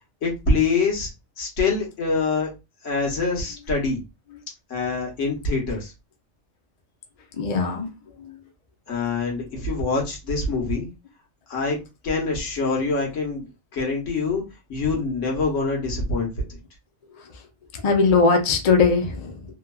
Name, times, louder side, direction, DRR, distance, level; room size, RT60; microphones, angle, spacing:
voice 1, 0.2-1.1 1.4-2.5 2.8-4.0 4.7-5.9 8.9-10.9 11.5-11.8 12.0-13.5 13.7-14.4 14.7-16.6, left 3 dB, 75° left, -1 dB, 1.4 m, -25 dB
voice 2, 7.4-7.9 8.2-8.4 17.7-19.5, left 4 dB, 45° left, 3 dB, 0.5 m, -20 dB
3.1 x 2.2 x 2.3 m, 0.25 s
omnidirectional pair, 1.3 m